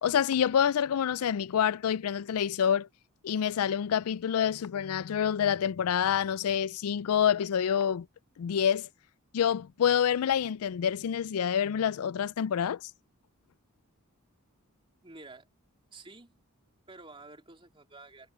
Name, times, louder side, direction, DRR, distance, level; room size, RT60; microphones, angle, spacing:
voice 1, 0.0-2.9 3.2-8.1 8.4-8.9 9.3-12.9, left 8 dB, 75° left, 0.4 m, -27 dB
voice 2, 15.0-15.5 15.9-16.4 16.9-18.3, right 3 dB, 25° right, 3.1 m, -50 dB
head